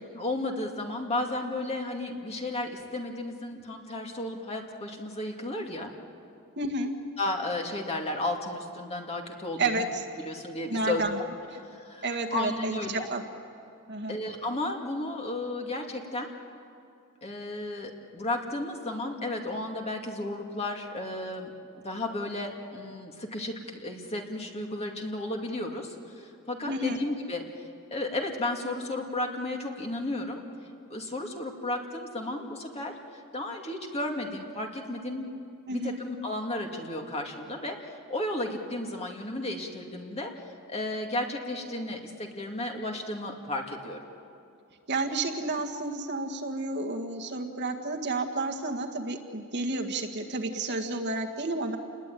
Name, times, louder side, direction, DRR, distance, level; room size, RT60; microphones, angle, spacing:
voice 1, 0.1-5.9 7.2-9.8 10.2-11.0 11.7-12.1 12.3-13.1 14.1-16.3 17.2-21.5 21.8-27.5 27.9-30.4 30.9-33.0 33.3-35.3 35.7-40.3 40.7-44.0, left 2 dB, 30° left, 2 dB, 2.4 m, -33 dB
voice 2, 6.6-6.9 9.6-10.0 10.7-11.2 11.5-11.6 12.0-13.2 13.9-14.2 26.7-27.0 35.7-36.0 44.9-51.8, right 2 dB, 50° right, 3 dB, 1.8 m, -31 dB
28.5 x 21.0 x 9.2 m, 2.5 s
head